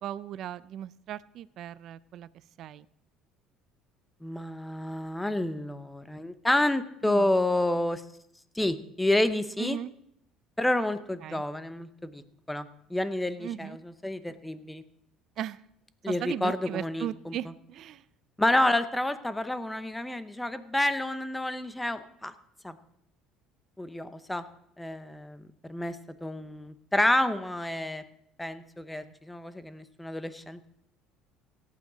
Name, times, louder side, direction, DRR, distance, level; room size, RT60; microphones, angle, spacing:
voice 1, 0.0-2.3 2.6-2.9 7.0-7.3 9.6-9.9 11.2-11.4 13.4-13.8 15.4-15.6 16.1-18.0 28.9-29.1, right 11 dB, 55° right, 17 dB, 0.4 m, -37 dB
voice 2, 4.2-8.0 8.5-9.8 10.6-12.2 12.5-14.8 16.0-17.3 18.4-22.3 22.6-22.8 23.8-24.4 24.8-28.0 28.4-30.7, left 1 dB, 5° left, 12 dB, 0.7 m, -29 dB
17.5 x 8.5 x 4.0 m, 0.76 s
cardioid pair, 115°, 0 cm